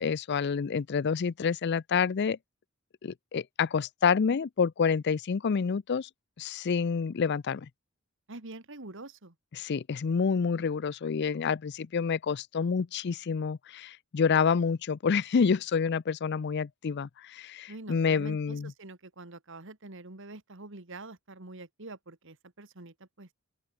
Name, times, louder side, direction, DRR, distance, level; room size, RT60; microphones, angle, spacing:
voice 1, 0.0-2.4 3.0-6.1 6.4-7.7 9.5-18.7, left 6 dB, 50° left, 0.4 m, -28 dB
voice 2, 8.3-9.3 17.7-23.3, right 2 dB, 60° right, 2.2 m, -45 dB
open air
head